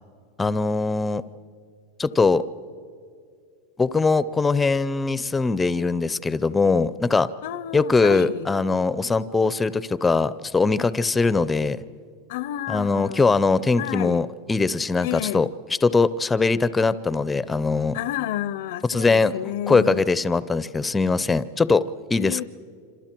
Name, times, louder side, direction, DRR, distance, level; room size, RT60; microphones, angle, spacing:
voice 1, 0.4-1.2 2.0-2.4 3.8-7.3 7.7-11.8 12.7-15.5 15.8-18.0 18.9-19.3 19.7-21.8 22.1-22.4, left 4 dB, 10° left, 0.5 m, -21 dB
voice 2, 7.4-8.5 12.3-13.4 13.8-14.3 15.0-15.5 17.9-20.0 22.2-22.4, left 12 dB, 70° left, 0.6 m, -30 dB
28.0 x 27.0 x 4.5 m
supercardioid pair, 145°, 0 cm